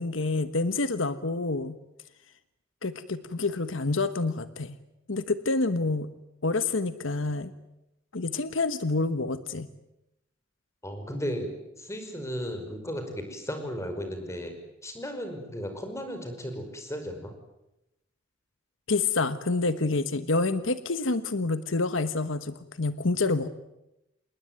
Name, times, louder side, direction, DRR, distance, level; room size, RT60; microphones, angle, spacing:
voice 1, 0.0-1.8 2.8-4.8 5.1-6.1 6.4-7.5 8.1-9.7 18.9-23.5, left 3 dB, 80° left, 12 dB, 1.2 m, -28 dB
voice 2, 10.8-11.5 11.8-14.6 14.8-17.3, equal, 15° left, 6 dB, 5.3 m, -35 dB
28.0 x 20.0 x 9.3 m, 0.90 s
head